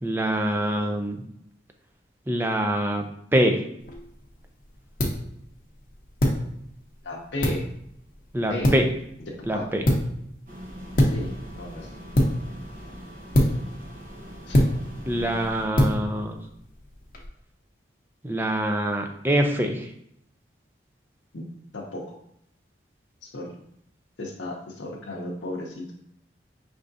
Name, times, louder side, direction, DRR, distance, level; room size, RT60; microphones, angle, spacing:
voice 1, 0.0-1.2 2.3-3.7 8.3-8.9 9.5-9.8 15.0-16.4 18.2-19.9, right 1 dB, 10° right, 4 dB, 0.4 m, -25 dB
sound 1, 3.8-17.3, equal, 45° left, 0.8 m, -27 dB
voice 2, 7.0-7.6 8.5-8.7 9.5-9.7 11.1-11.9 14.5-14.6 15.3-15.4 21.3-21.4 21.7-22.0 23.2-23.5 24.2-26.0, left 1 dB, 85° left, -3 dB, 0.7 m, -34 dB
sound 2, 10.5-15.7, equal, 45° right, 1.0 m, -41 dB
5.2 x 3.5 x 2.6 m, 0.73 s
head